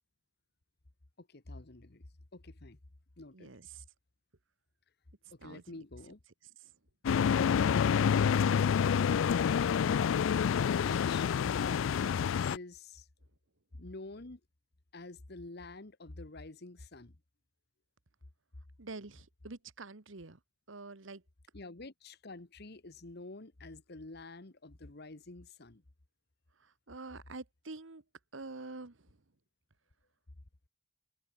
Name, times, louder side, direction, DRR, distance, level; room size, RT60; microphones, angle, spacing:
voice 1, 1.2-2.0 2.3-2.8 3.2-3.5 5.3-6.2 10.4-11.3 11.6-13.1 13.8-14.4 14.9-17.1 21.5-25.8, left 2 dB, 55° left, 1.4 m, -48 dB
voice 2, 3.3-3.8 5.4-5.8 7.1-7.4 18.8-20.4 20.7-21.2 26.9-28.0 28.3-29.0, right 3 dB, 75° right, 1.4 m, -46 dB
sound 1, 7.0-12.6, left 7 dB, 75° left, 0.3 m, -28 dB
head